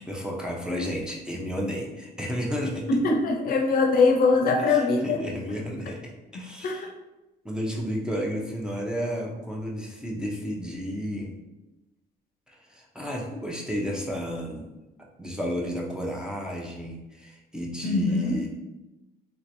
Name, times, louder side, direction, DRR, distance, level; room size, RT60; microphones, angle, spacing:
voice 1, 0.1-2.9 4.6-6.9 7.4-11.3 12.5-14.7 15.2-18.5, equal, 5° right, -2 dB, 0.6 m, -32 dB
voice 2, 2.9-5.2 6.3-6.9 17.8-18.4, left 3 dB, 60° left, 2 dB, 0.6 m, -22 dB
3.2 x 3.0 x 2.6 m, 1.0 s
cardioid pair, 110°, 17 cm